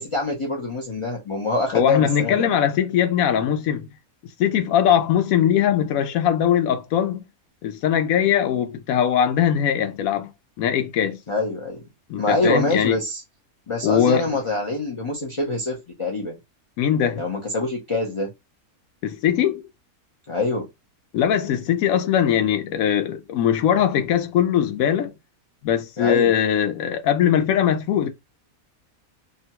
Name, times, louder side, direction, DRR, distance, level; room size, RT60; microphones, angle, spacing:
voice 1, 0.0-2.5 11.3-11.8 12.2-13.2 13.7-16.4 17.1-18.3 20.3-20.7 26.0-26.3, left 2 dB, 40° left, 0.4 m, -25 dB
voice 2, 1.7-3.9 4.4-7.2 7.6-10.3 10.6-11.2 12.1-13.0 13.8-14.3 16.8-17.2 19.0-19.6 21.1-25.1 25.6-28.1, left 9 dB, 70° left, 1.0 m, -21 dB
2.8 x 2.1 x 2.8 m
omnidirectional pair, 1.6 m